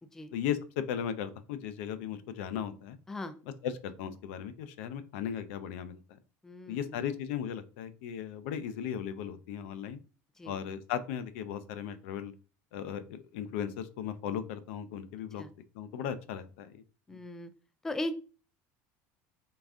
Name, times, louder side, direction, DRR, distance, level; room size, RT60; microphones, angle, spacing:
voice 1, 0.3-3.0 3.6-6.0 6.7-10.0 10.5-12.3 12.7-15.4 15.7-16.8, left 9 dB, 85° left, 11 dB, 0.5 m, -36 dB
voice 2, 6.4-7.0 10.4-10.5 15.4-15.5 17.1-17.5 17.8-18.1, left 1 dB, 5° left, 10 dB, 0.3 m, -38 dB
3.9 x 3.5 x 3.6 m, 0.37 s
cardioid pair, 165°, 7 cm